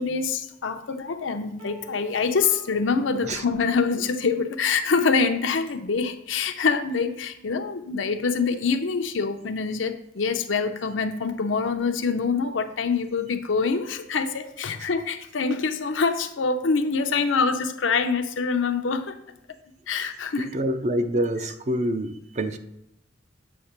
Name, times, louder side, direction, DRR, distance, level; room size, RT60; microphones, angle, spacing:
voice 1, 0.0-19.1 19.9-20.5, left 5 dB, 90° left, 0.7 m, -25 dB
sound 1, 1.6-4.5, right 4 dB, 75° right, 1.7 m, -49 dB
voice 2, 20.4-22.6, right 1 dB, 40° right, 0.5 m, -26 dB
8.2 x 2.8 x 5.9 m
head